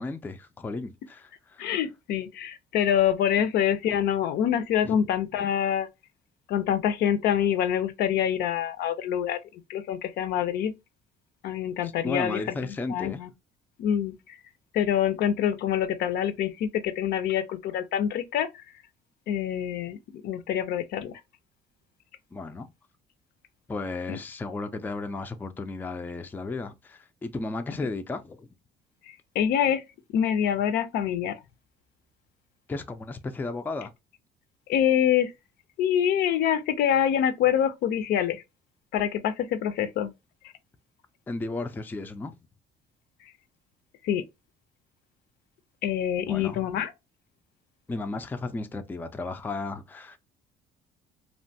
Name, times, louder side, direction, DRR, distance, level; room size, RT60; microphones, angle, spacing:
voice 1, 0.0-1.7 4.8-5.0 11.8-13.2 22.3-22.7 23.7-28.5 32.7-33.9 41.3-42.3 46.2-46.7 47.9-50.2, left 3 dB, 10° left, 0.3 m, -34 dB
voice 2, 1.6-5.9 6.5-9.4 9.7-10.7 11.4-12.6 12.9-13.3 13.8-14.2 14.7-18.5 19.3-21.2 24.1-24.2 29.4-29.8 30.1-31.4 34.7-35.3 35.8-38.4 38.9-40.1 44.0-44.2 45.8-46.9, left 9 dB, 70° left, 0.5 m, -25 dB
2.9 x 2.2 x 2.6 m
cardioid pair, 110°, 17 cm